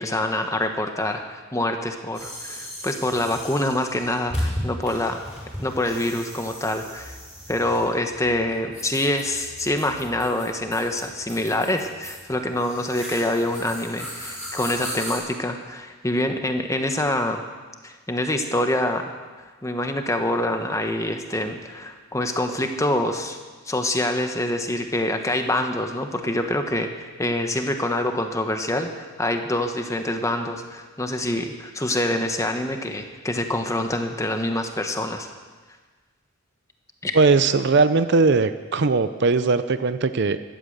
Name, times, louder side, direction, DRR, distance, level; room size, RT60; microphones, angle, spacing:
voice 1, 0.0-5.2 5.6-7.2 7.5-17.4 17.8-19.1 19.4-23.4 23.6-35.3 37.0-37.2, left 1 dB, 15° left, 5 dB, 1.0 m, -26 dB
sound 1, 2.1-15.2, equal, 5° right, 5.9 m, -36 dB
voice 2, 37.1-40.4, right 4 dB, 50° right, 12 dB, 0.5 m, -19 dB
13.5 x 12.0 x 8.0 m, 1.4 s
head